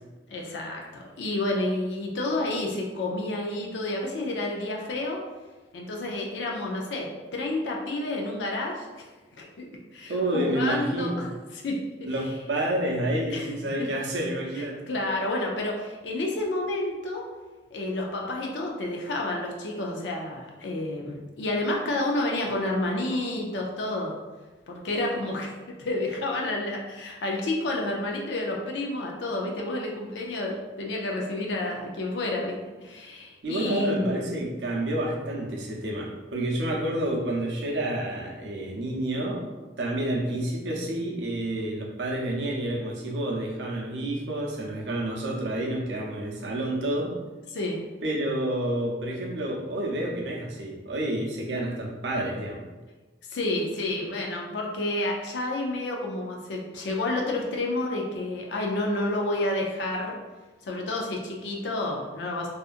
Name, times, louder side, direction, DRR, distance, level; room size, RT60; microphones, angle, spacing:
voice 1, 0.3-5.2 5.7-8.9 9.3-11.3 11.6-11.8 13.3-13.5 14.9-17.2 17.7-24.2 24.7-32.5 32.8-34.3 47.5-47.8 53.3-60.2 60.6-62.5, left 2 dB, 85° left, -1 dB, 0.4 m, -30 dB
voice 2, 10.1-11.2 12.0-14.8 33.4-39.5 39.8-47.2 48.0-52.7, right 1 dB, 85° right, -1 dB, 0.6 m, -29 dB
2.7 x 2.4 x 2.4 m, 1.2 s
head